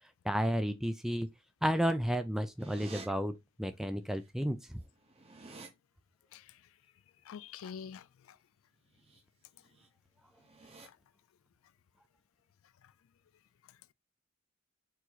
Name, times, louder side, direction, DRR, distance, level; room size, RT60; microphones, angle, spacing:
voice 1, 0.3-1.3 1.6-4.6, equal, ahead, 0.3 m, -32 dB
sound 1, 2.6-3.1 4.3-4.4 4.6-5.7 8.9-9.2 9.6-9.9 10.3-10.9, right 3 dB, 25° right, 0.8 m, -50 dB
voice 2, 7.3-8.4 10.8-11.0, left 7 dB, 75° left, 0.3 m, -46 dB
4.6 x 2.9 x 3.9 m
head